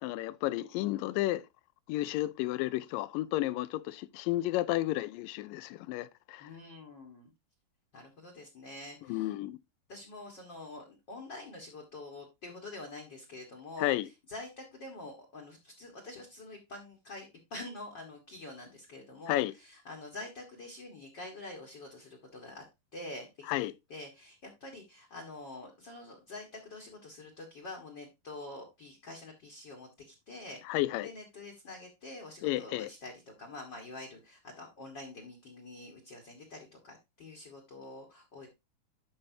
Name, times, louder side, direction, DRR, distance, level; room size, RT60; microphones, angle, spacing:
voice 1, 0.0-1.4 1.9-6.5 9.1-9.6 13.8-14.1 19.3-19.5 23.5-23.7 30.7-31.1 32.4-32.9, left 16 dB, 85° left, 2.2 m, -32 dB
voice 2, 6.4-7.3 7.9-9.3 9.9-14.0 14.3-22.6 22.9-30.8 31.0-38.5, left 2 dB, 45° left, 1.7 m, -46 dB
12.0 x 5.5 x 2.7 m
omnidirectional pair, 3.9 m